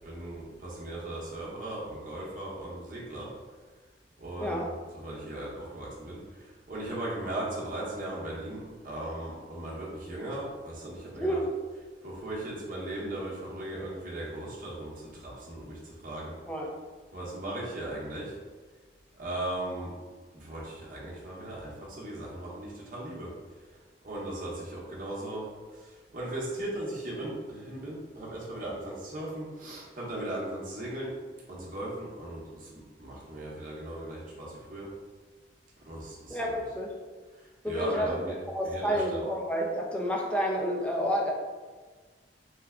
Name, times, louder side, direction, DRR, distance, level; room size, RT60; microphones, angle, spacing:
voice 1, 0.0-3.3 4.2-4.7 4.9-6.2 6.7-11.4 12.0-16.3 17.1-18.3 19.2-19.9 20.3-23.3 24.0-25.4 26.1-31.1 31.5-34.9 35.8-36.5 37.6-38.4 38.6-39.2, right 1 dB, 50° right, -5 dB, 1.0 m, -37 dB
voice 2, 4.4-4.7 11.2-11.5 16.5-16.7 36.3-36.9 37.6-41.3, equal, 5° left, -2 dB, 0.5 m, -30 dB
3.5 x 2.2 x 3.6 m, 1.4 s
head